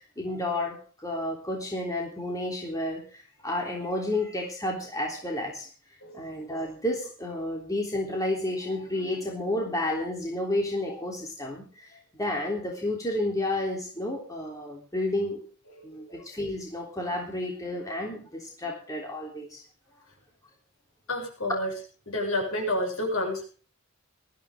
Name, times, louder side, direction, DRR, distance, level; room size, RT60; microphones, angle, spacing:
voice 1, 0.0-5.7 6.1-15.4 15.8-19.6, left 1 dB, 15° left, -1 dB, 3.5 m, -31 dB
voice 2, 21.1-21.7 22.1-23.5, left 1 dB, 65° left, 0 dB, 7.3 m, -29 dB
20.0 x 14.0 x 3.8 m, 0.39 s
head